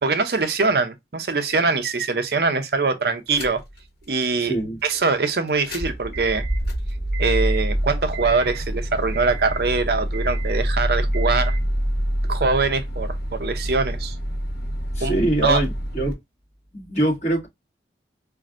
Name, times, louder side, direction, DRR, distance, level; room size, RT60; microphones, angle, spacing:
voice 1, 0.0-3.6 4.1-4.5 4.8-6.5 7.2-11.5 12.3-14.2 15.0-15.1 15.4-15.6, right 4 dB, 60° right, 0.6 m, -23 dB
sound 1, 3.3-3.8 4.2-4.3 5.5-16.1, right 1 dB, 60° left, 1.7 m, -26 dB
voice 2, 4.4-4.8 14.9-16.2 16.7-17.5, right 1 dB, 40° left, 2.0 m, -23 dB
4.9 x 2.6 x 2.5 m
head